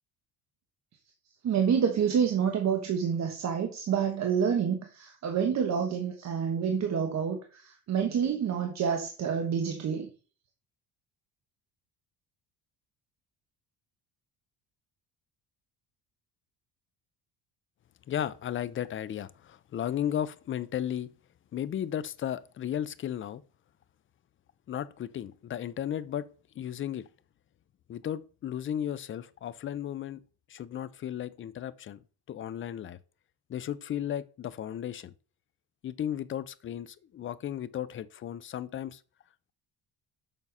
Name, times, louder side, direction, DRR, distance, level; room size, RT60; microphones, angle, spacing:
voice 1, 1.4-10.1, right 7 dB, 40° right, 1.1 m, -28 dB
voice 2, 18.1-21.1 21.5-23.4 24.7-26.2 26.6-27.0 27.9-30.2 30.5-32.0 32.3-33.0 33.5-35.1 35.8-39.0, left 10 dB, 30° left, 0.4 m, -34 dB
7.2 x 5.5 x 5.4 m
cardioid pair, 155°, 41 cm